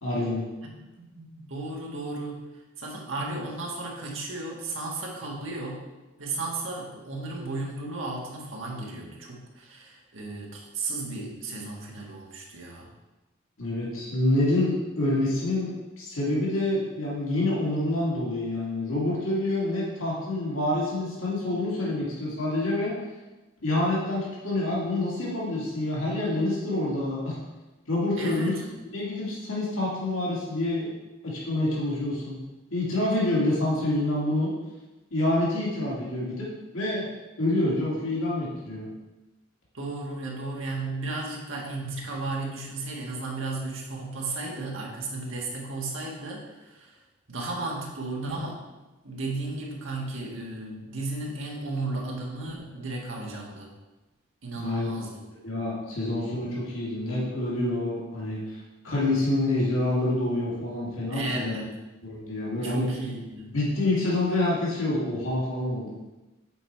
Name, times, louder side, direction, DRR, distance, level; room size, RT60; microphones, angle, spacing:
voice 1, 0.0-0.4 13.6-15.7 16.0-22.9 23.6-27.4 27.9-28.5 28.9-30.9 31.2-32.4 32.7-34.5 35.1-36.5 36.7-37.1 37.4-38.9 54.6-54.9 55.4-58.6 58.8-61.5 62.0-62.8 63.5-66.0, left 1 dB, 90° left, -6 dB, 2.5 m, -27 dB
voice 2, 1.0-2.4 2.8-5.8 6.2-12.9 28.2-28.7 39.7-46.9 47.3-48.6 49.0-53.7 54.4-55.2 61.1-61.7 62.6-63.5, right 2 dB, 75° right, -2 dB, 1.6 m, -34 dB
7.9 x 4.6 x 4.4 m, 1.1 s
head